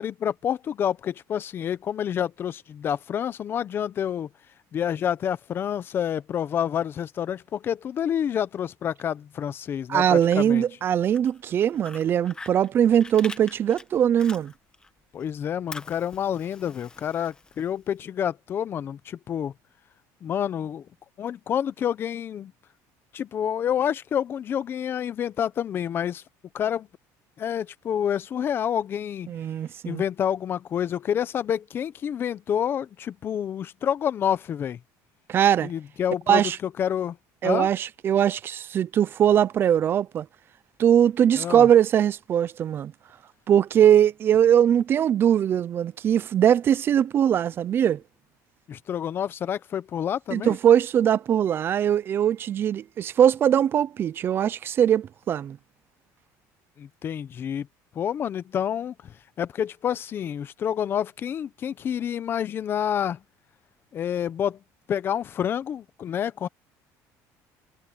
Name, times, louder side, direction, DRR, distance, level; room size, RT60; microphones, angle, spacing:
voice 1, 0.0-4.3 4.7-10.6 15.1-19.5 20.2-20.8 21.2-22.5 23.1-26.2 26.5-26.9 27.4-29.3 29.8-34.8 35.6-37.2 37.4-37.7 41.4-41.7 48.7-50.6 56.8-57.7 57.9-58.9 59.4-63.2 63.9-64.6 64.9-66.5, left 9 dB, 35° left, 0.7 m, -28 dB
voice 2, 9.9-14.5 29.3-30.0 35.3-35.7 36.3-36.6 37.4-40.3 40.8-42.9 43.5-48.0 50.3-55.6, right 9 dB, 30° right, 0.5 m, -21 dB
Fire, 11.0-14.9 15.2-18.0, left 3 dB, 10° left, 1.4 m, -44 dB
cardioid pair, 160°, 7 cm